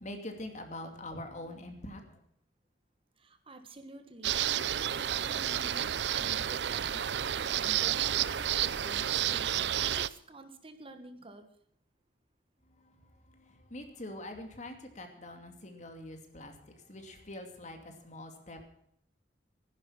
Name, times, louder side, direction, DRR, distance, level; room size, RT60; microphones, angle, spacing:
voice 1, 0.0-2.2 12.8-18.7, left 1 dB, 45° left, 5 dB, 2.6 m, -44 dB
voice 2, 3.2-11.5, right 1 dB, 30° right, 8 dB, 1.4 m, -49 dB
sound 1, 4.2-10.1, right 10 dB, 75° right, 0.5 m, -30 dB
sound 2, 8.1-9.7, equal, 10° left, 4.0 m, -53 dB
15.5 x 11.0 x 5.9 m, 0.70 s
head